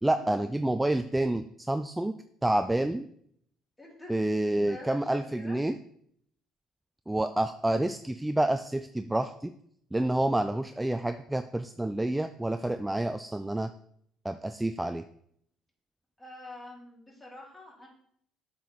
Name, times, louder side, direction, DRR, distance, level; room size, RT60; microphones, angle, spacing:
voice 1, 0.0-2.1 2.4-3.1 4.1-5.8 7.1-9.5 9.9-13.7 14.2-15.0, right 1 dB, 10° right, 9 dB, 0.4 m, -28 dB
voice 2, 3.8-4.3 4.7-5.6 16.2-17.9, left 1 dB, 20° left, -3 dB, 3.4 m, -46 dB
7.8 x 4.8 x 4.3 m, 0.67 s
hypercardioid pair, 55°, 0 cm